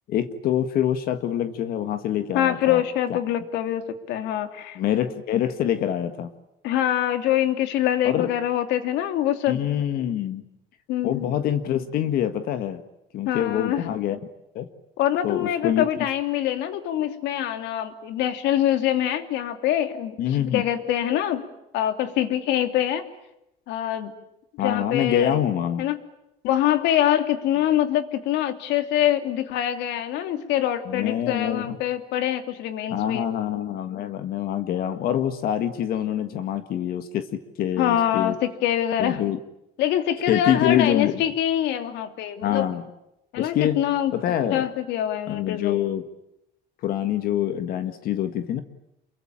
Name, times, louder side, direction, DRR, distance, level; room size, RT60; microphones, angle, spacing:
voice 1, 0.1-2.8 3.1-3.2 4.7-6.3 8.0-8.3 9.5-10.4 11.0-12.8 13.1-14.2 14.5-14.7 15.2-15.8 20.2-20.6 24.6-25.8 30.8-31.8 32.9-38.4 39.0-39.4 40.3-41.2 42.4-42.8 43.3-43.8 44.1-44.7 45.3-46.0 46.8-48.6, left 10 dB, 55° left, 9 dB, 1.7 m, -25 dB
voice 2, 2.3-3.8 4.1-4.8 6.6-9.6 10.9-11.3 13.2-13.9 15.0-21.4 21.7-23.1 23.7-24.1 24.6-25.4 25.8-26.0 26.4-33.3 37.8-39.2 39.8-42.7 43.3-44.2 44.5-45.8, left 11 dB, 75° left, 8 dB, 3.0 m, -24 dB
28.5 x 23.5 x 8.9 m, 0.86 s
cardioid pair, 170°, 18 cm